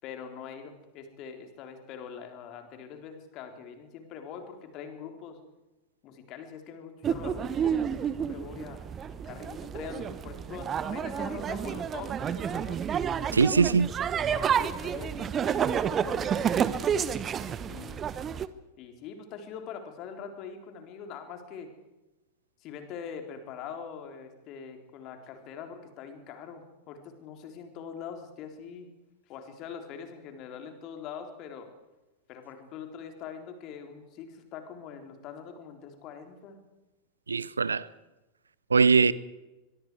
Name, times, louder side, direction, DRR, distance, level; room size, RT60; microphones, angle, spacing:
voice 1, 0.0-5.4 6.0-8.9 9.3-12.8 14.2-17.0 17.7-18.0 18.8-21.7 22.6-28.9 29.3-31.7 32.3-36.6, left 7 dB, 40° left, 3.7 m, -43 dB
sound 1, 7.0-18.5, right 8 dB, 25° right, 1.0 m, -30 dB
voice 2, 13.3-13.9 37.3-37.9 38.7-39.1, right 5 dB, 75° right, 0.7 m, -21 dB
23.5 x 23.0 x 4.8 m
figure-of-eight pair, 90°, 0 cm